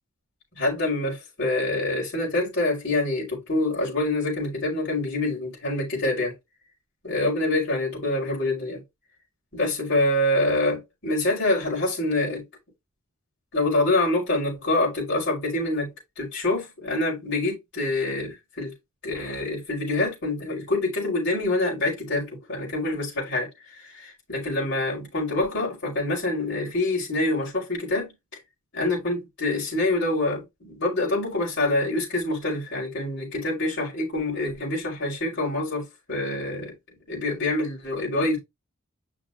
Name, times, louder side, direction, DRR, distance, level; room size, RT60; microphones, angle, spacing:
voice 1, 0.5-6.3 7.0-8.8 9.5-12.4 13.5-18.7 19.0-23.5 23.8-28.1 28.7-36.7 37.1-38.4, left 2 dB, 55° left, 5.3 m, -26 dB
6.5 x 6.1 x 2.9 m
head